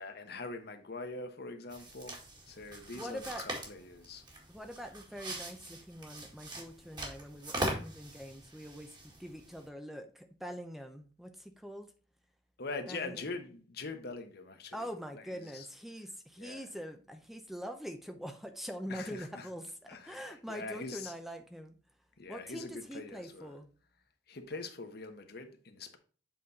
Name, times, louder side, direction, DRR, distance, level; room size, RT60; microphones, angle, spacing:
voice 1, 0.0-2.2 2.5-4.2 12.6-14.9 15.1-15.7 16.4-16.7 18.9-19.5 19.9-21.1 22.2-23.6 24.3-26.0, left 3 dB, 60° left, 1.0 m, -43 dB
sound 1, 1.7-9.7, right 1 dB, 25° right, 1.8 m, -42 dB
voice 2, 2.9-3.4 4.5-11.9 12.9-13.2 14.7-21.8 22.3-23.7, equal, ahead, 0.6 m, -44 dB
7.6 x 4.1 x 4.0 m
head